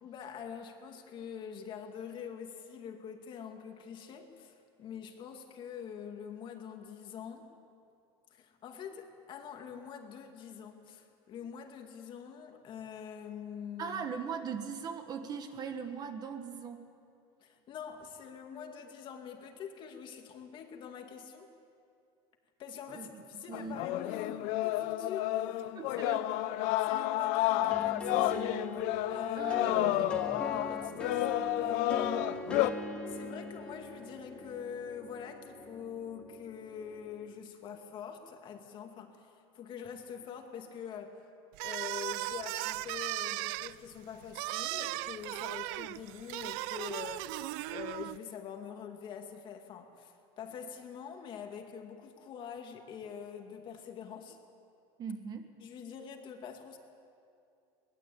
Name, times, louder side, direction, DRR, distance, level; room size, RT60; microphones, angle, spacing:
voice 1, 0.0-7.5 8.3-14.0 17.4-21.5 22.6-26.4 26.8-28.5 29.1-32.5 33.1-41.2 41.6-54.4 55.6-56.8, left 7 dB, 40° left, 4 dB, 2.3 m, -45 dB
voice 2, 13.8-16.8 22.9-23.8 25.7-26.2 29.3-30.1 55.0-55.5, right 6 dB, 30° right, 7 dB, 1.5 m, -40 dB
sound 1, 23.5-32.7, left 15 dB, 60° left, 0.8 m, -31 dB
sound 2, 27.7-37.3, left 1 dB, 10° left, 2.1 m, -43 dB
sound 3, 41.5-48.2, right 19 dB, 70° right, 0.5 m, -37 dB
22.5 x 20.0 x 8.6 m, 2.5 s
cardioid pair, 160°, 13 cm